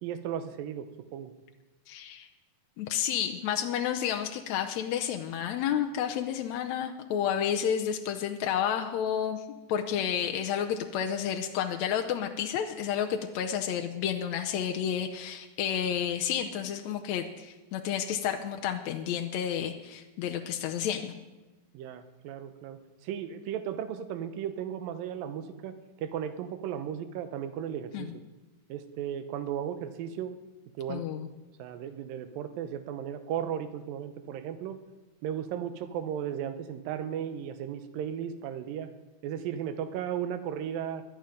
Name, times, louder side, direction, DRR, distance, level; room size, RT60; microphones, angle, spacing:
voice 1, 0.0-1.3 21.7-28.1 28.7-30.4 30.8-31.1 31.6-34.8 35.2-38.9 39.2-41.0, right 9 dB, 80° right, 10 dB, 2.6 m, -35 dB
voice 2, 1.9-2.3 2.8-21.1 27.9-28.1 30.9-31.3, left 9 dB, 75° left, 4 dB, 1.6 m, -31 dB
18.0 x 12.0 x 5.1 m, 1.1 s
omnidirectional pair, 4.0 m